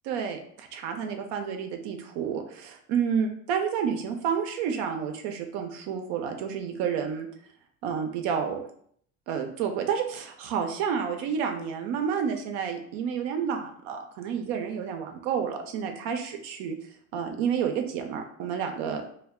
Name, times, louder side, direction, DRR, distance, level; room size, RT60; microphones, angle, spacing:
voice 1, 0.1-7.3 7.8-8.6 9.3-16.8 17.1-19.0, right 7 dB, 80° right, 4 dB, 0.7 m, -30 dB
2.3 x 2.2 x 3.5 m, 0.63 s
supercardioid pair, 95°, 41 cm